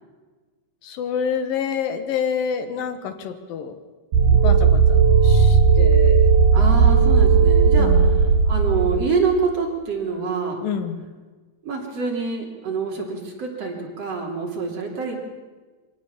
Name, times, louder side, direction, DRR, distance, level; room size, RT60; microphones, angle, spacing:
voice 1, 0.8-3.8 4.3-6.3 7.8-8.2 10.6-11.0, left 7 dB, 75° left, 9 dB, 3.1 m, -28 dB
sound 1, 4.1-9.1, right 5 dB, 70° right, 3.3 m, -15 dB
voice 2, 6.5-10.6 11.6-15.2, right 5 dB, 45° right, 0 dB, 4.0 m, -26 dB
24.0 x 17.5 x 7.3 m, 1.3 s
omnidirectional pair, 4.0 m